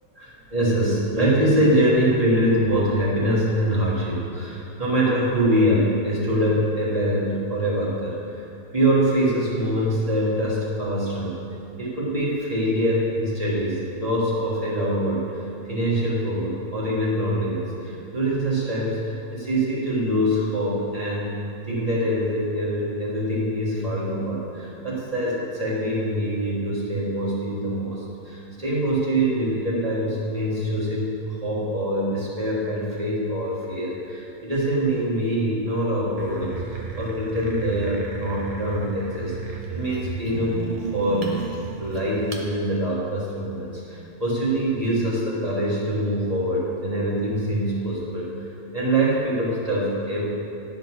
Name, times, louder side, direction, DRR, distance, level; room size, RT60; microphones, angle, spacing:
voice 1, 0.1-8.4 8.7-11.3 11.8-15.4 15.7-40.6 40.9-41.3 41.8-48.3 48.7-50.3, right 1 dB, 25° right, -6 dB, 1.5 m, -24 dB
sound 1, 36.2-42.5, right 4 dB, 65° right, 0.3 m, -34 dB
10.5 x 3.9 x 6.1 m, 2.6 s
omnidirectional pair, 1.8 m